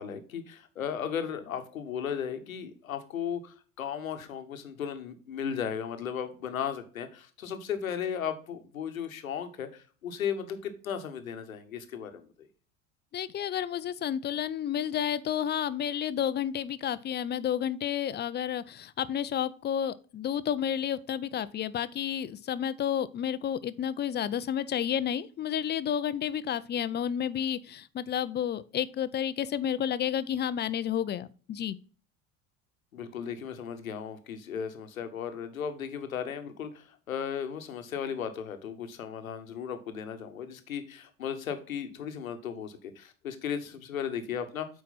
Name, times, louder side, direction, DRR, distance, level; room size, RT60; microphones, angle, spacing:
voice 1, 0.0-12.5 32.9-44.7, left 8 dB, 80° left, 1.1 m, -36 dB
voice 2, 13.1-31.8, left 9 dB, 25° left, 0.5 m, -31 dB
8.4 x 4.7 x 4.0 m
figure-of-eight pair, 70°, 41 cm